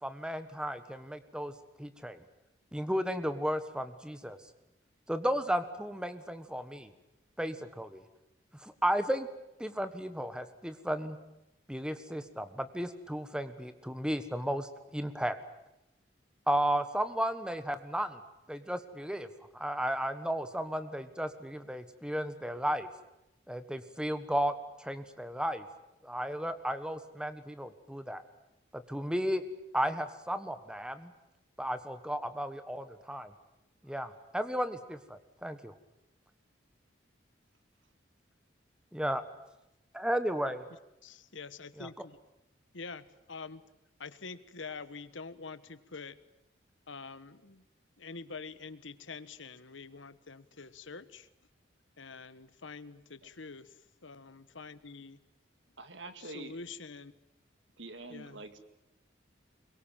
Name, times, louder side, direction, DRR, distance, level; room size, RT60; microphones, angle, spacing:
voice 1, 0.0-1.5 1.8-2.2 2.7-4.4 5.1-6.9 7.4-8.0 8.5-9.3 9.6-11.2 11.7-15.4 16.5-18.2 18.5-19.3 19.5-22.9 23.5-25.6 26.0-28.2 28.7-29.4 29.7-31.1 31.6-33.3 33.8-35.7 38.9-39.2 39.9-40.7 41.8-41.9, equal, 5° right, 10 dB, 1.4 m, -34 dB
voice 2, 41.0-42.2 42.7-43.6 44.0-46.2 46.9-47.6 48.0-51.3 52.0-53.8 54.0-55.2 56.2-57.1 58.1-58.4, left 4 dB, 85° left, 14 dB, 1.3 m, -46 dB
voice 3, 55.8-56.6 57.8-58.6, right 2 dB, 75° right, 9 dB, 2.1 m, -46 dB
24.5 x 22.5 x 9.1 m, 0.89 s
head